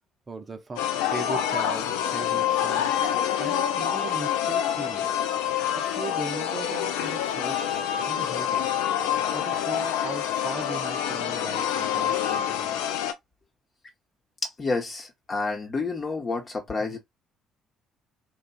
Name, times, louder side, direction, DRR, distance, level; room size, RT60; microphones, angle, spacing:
voice 1, 0.3-2.9 3.4-5.1 5.7-8.7 9.3-13.1 16.8-17.0, right 3 dB, 35° right, 0.6 m, -38 dB
sound 1, 0.8-13.1, left 10 dB, 70° left, 0.3 m, -27 dB
voice 2, 14.4-17.0, left 3 dB, 35° left, 1.0 m, -29 dB
3.1 x 2.4 x 2.3 m
figure-of-eight pair, 50°, 0 cm